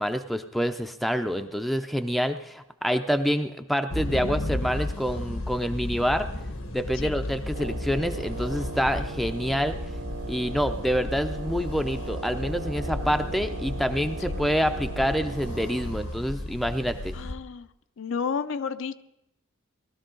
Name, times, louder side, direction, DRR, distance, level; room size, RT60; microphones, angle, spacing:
voice 1, 0.0-6.3 6.7-9.8 10.3-17.2, equal, ahead, 8 dB, 0.4 m, -27 dB
sound 1, 3.9-17.3, left 1 dB, 90° left, 1.4 m, -34 dB
Wind instrument woodwind instrument, 7.5-16.1, right 3 dB, 75° right, 0.7 m, -39 dB
voice 2, 17.1-17.7 18.0-19.0, left 6 dB, 65° left, 11 dB, 0.5 m, -31 dB
19.0 x 13.0 x 3.8 m, 0.88 s
head